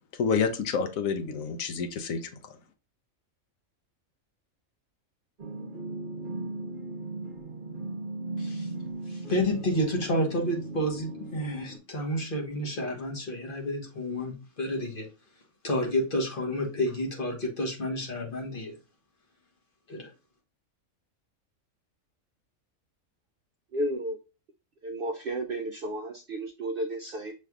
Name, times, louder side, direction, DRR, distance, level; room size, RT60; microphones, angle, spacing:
voice 1, 0.2-2.5, left 5 dB, 75° left, 8 dB, 1.1 m, -29 dB
sound 1, 5.4-11.8, right 2 dB, 45° right, 0.9 m, -37 dB
voice 2, 8.4-8.7 9.1-15.1 15.6-18.7 19.9-20.1, equal, 40° left, 1 dB, 1.3 m, -30 dB
voice 3, 23.7-24.2 24.8-27.3, right 1 dB, 60° right, 4 dB, 0.6 m, -32 dB
6.4 x 3.2 x 2.3 m, 0.30 s
omnidirectional pair, 1.4 m